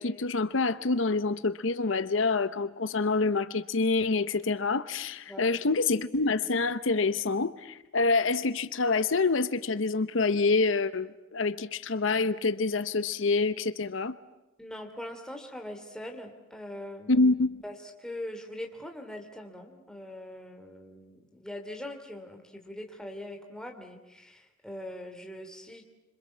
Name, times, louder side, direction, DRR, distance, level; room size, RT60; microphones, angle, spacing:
voice 1, 0.0-14.1 17.1-17.6, left 3 dB, 70° left, 13 dB, 0.8 m, -27 dB
voice 2, 14.6-17.3 17.6-25.8, left 1 dB, 5° left, 3 dB, 3.1 m, -42 dB
26.5 x 26.5 x 7.4 m, 0.97 s
head